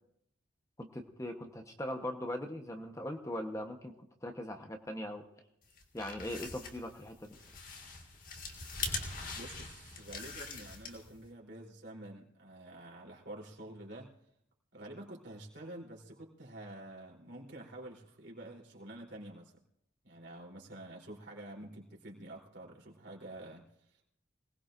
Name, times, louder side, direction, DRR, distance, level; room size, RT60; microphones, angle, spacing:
voice 1, 0.8-3.9 4.2-5.2 5.9-7.4, left 1 dB, 15° left, 4 dB, 1.0 m, -40 dB
sound 1, 5.7-11.2, left 4 dB, 45° left, 2.0 m, -42 dB
voice 2, 9.3-14.1 14.7-19.5 20.0-24.0, right 1 dB, 70° right, -2 dB, 3.6 m, -48 dB
25.5 x 19.0 x 2.6 m, 0.77 s
head